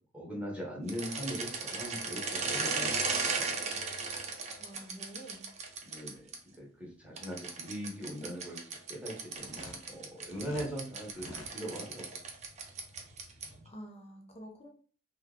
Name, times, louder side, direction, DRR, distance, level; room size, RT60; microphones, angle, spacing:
voice 1, 0.1-3.5 5.8-6.3 6.6-8.6 8.9-12.0, equal, 5° right, -4 dB, 0.8 m, -40 dB
sound 1, 0.9-6.4 7.2-13.6, right 4 dB, 35° right, 0.5 m, -36 dB
voice 2, 4.6-5.5 13.6-14.7, right 1 dB, 30° left, 1 dB, 0.8 m, -48 dB
sound 2, 9.4-10.7 11.1-11.5, left 2 dB, 70° left, 0.5 m, -48 dB
2.7 x 2.3 x 3.5 m, 0.42 s
head